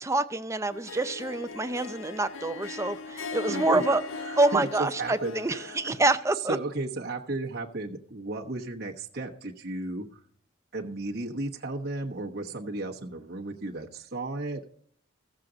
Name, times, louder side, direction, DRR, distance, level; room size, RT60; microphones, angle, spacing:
voice 1, 0.0-4.0 4.4-6.6, right 2 dB, 15° right, 10 dB, 0.5 m, -26 dB
Harp, 0.7-6.0, left 3 dB, 80° left, 0.6 m, -39 dB
voice 2, 3.5-6.0 6.5-10.2 10.7-14.7, right 2 dB, 50° right, 0 dB, 1.1 m, -34 dB
15.0 x 7.5 x 3.8 m, 0.62 s
head